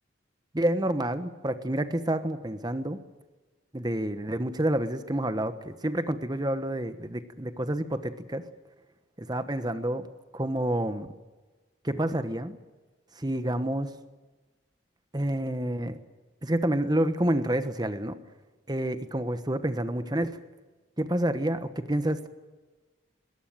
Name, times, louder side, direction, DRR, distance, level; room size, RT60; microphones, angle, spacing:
voice 1, 0.5-3.0 3.7-8.4 9.2-10.1 10.3-11.1 11.8-12.6 13.2-13.9 15.1-16.0 16.4-18.2 18.7-20.4 21.0-22.3, right 1 dB, 20° right, 10 dB, 1.2 m, -28 dB
22.0 x 17.5 x 9.1 m, 1.2 s
head